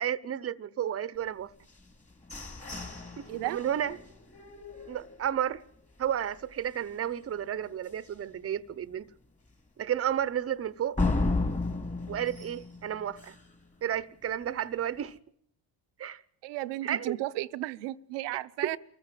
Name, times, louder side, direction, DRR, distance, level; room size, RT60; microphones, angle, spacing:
voice 1, 0.0-1.5 3.2-4.0 4.9-5.6 6.0-9.1 9.8-11.0 12.1-13.3 13.8-15.2 16.0-16.2 16.8-17.2 18.3-18.8, right 10 dB, 35° right, 0.9 m, -32 dB
sound 1, 1.7-5.6 6.0-6.1 6.5-6.9 7.3-7.4 7.9-8.0 11.0-13.6, left 3 dB, 15° left, 2.6 m, -34 dB
voice 2, 16.4-18.8, right 17 dB, 80° right, 0.9 m, -34 dB
24.0 x 14.5 x 9.1 m
cardioid pair, 100°, 41 cm